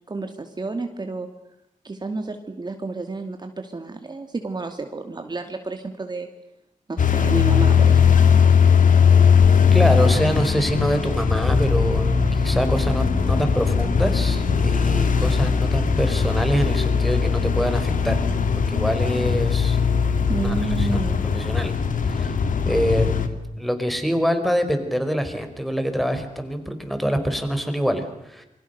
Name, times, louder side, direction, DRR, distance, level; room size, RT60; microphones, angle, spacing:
voice 1, 0.1-1.3 1.8-6.3 6.9-8.0 20.3-21.2, right 3 dB, 30° right, 5 dB, 2.4 m, -30 dB
sound 1, 7.0-23.3, left 6 dB, 70° left, 2.6 m, -19 dB
voice 2, 9.7-18.2 18.7-19.8 20.4-21.0 21.3-21.7 22.0-22.4 22.6-28.5, equal, ahead, 8 dB, 4.7 m, -25 dB
28.0 x 24.5 x 6.7 m, 0.84 s
wide cardioid pair, 105°, 14 cm